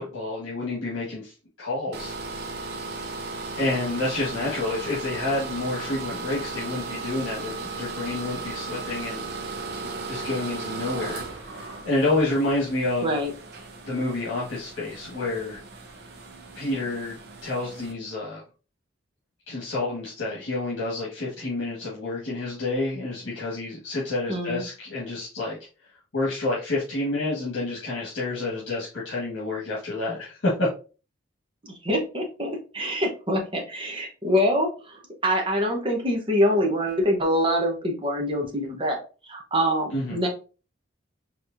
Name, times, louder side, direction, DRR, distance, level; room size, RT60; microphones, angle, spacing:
voice 1, 0.0-2.1 3.6-9.3 10.1-13.1 13.9-15.6 16.5-17.2 17.4-18.4 19.5-25.6 26.1-30.7 39.9-40.2, left 2 dB, 75° left, -6 dB, 1.4 m, -29 dB
sound 1, 1.9-17.9, right 3 dB, 55° right, 0.7 m, -36 dB
voice 2, 24.3-24.6 31.6-39.0 39.3-40.3, equal, 25° right, 1 dB, 0.9 m, -25 dB
4.5 x 3.2 x 2.5 m, 0.34 s
head